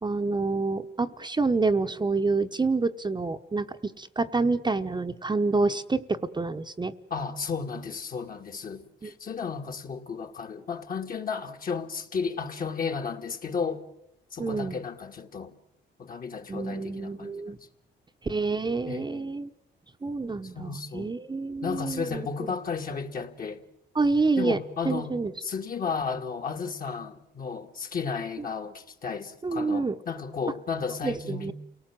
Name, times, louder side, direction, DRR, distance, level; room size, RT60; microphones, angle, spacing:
voice 1, 0.0-6.9 9.0-9.1 14.4-14.8 16.5-17.6 18.2-19.5 20.0-22.3 23.9-24.6 24.8-25.3 29.4-29.9 31.0-31.5, right 3 dB, 20° right, 1.0 m, -27 dB
voice 2, 7.1-13.9 14.3-15.6 16.0-17.5 18.9-19.3 20.4-21.1 21.6-23.6 24.4-25.1 25.4-31.5, left 5 dB, 45° left, 2.3 m, -33 dB
29.0 x 18.5 x 7.7 m
cardioid pair, 90°, 20 cm